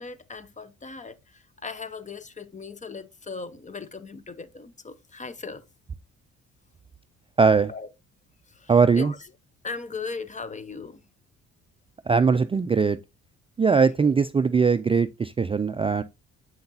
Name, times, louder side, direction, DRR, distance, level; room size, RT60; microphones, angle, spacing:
voice 1, 0.0-5.6 7.7-7.9 8.5-9.2 9.6-11.0, left 4 dB, 25° left, 0.8 m, -38 dB
voice 2, 7.4-7.7 8.7-9.1 12.1-13.0 13.6-16.0, right 5 dB, 20° right, 0.4 m, -20 dB
7.9 x 5.8 x 2.7 m
cardioid pair, 90°, 30 cm